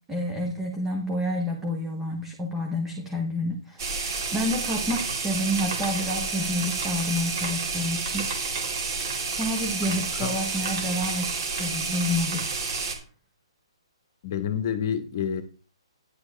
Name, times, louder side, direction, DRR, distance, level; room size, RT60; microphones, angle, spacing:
voice 1, 0.0-8.3 9.0-12.4, left 1 dB, 5° right, 1 dB, 1.2 m, -29 dB
sound 1, 3.8-12.9, right 4 dB, 40° right, 2.5 m, -30 dB
voice 2, 9.9-10.3 14.2-15.4, left 8 dB, 30° left, 8 dB, 1.4 m, -29 dB
10.5 x 8.0 x 3.4 m, 0.35 s
hypercardioid pair, 170°, 3 cm